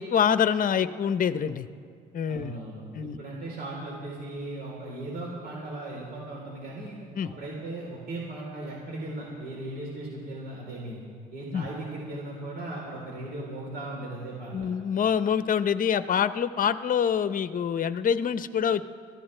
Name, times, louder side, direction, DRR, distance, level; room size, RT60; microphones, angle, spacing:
voice 1, 0.0-1.7 2.1-2.5 2.9-3.2 7.2-7.3 11.5-11.6 14.5-18.8, left 8 dB, 45° left, 12 dB, 0.8 m, -25 dB
voice 2, 2.3-11.0 11.3-14.7, right 2 dB, 60° right, -3 dB, 3.8 m, -37 dB
23.0 x 15.0 x 3.4 m, 2.3 s
supercardioid pair, 65°, 19 cm